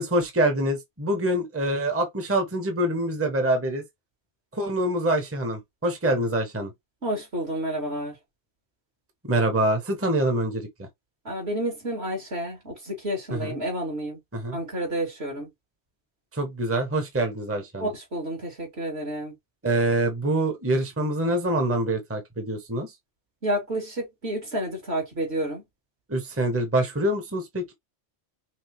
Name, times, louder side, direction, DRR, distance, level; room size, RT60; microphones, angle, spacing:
voice 1, 0.0-3.8 4.5-6.7 9.2-10.9 13.4-13.5 14.3-14.6 16.3-17.9 19.6-22.9 26.1-27.7, right 1 dB, 15° right, 1.0 m, -25 dB
voice 2, 7.0-8.2 11.2-14.2 14.5-15.5 17.8-19.4 23.4-25.6, right 1 dB, 65° right, 3.0 m, -30 dB
5.9 x 2.5 x 3.1 m
omnidirectional pair, 1.1 m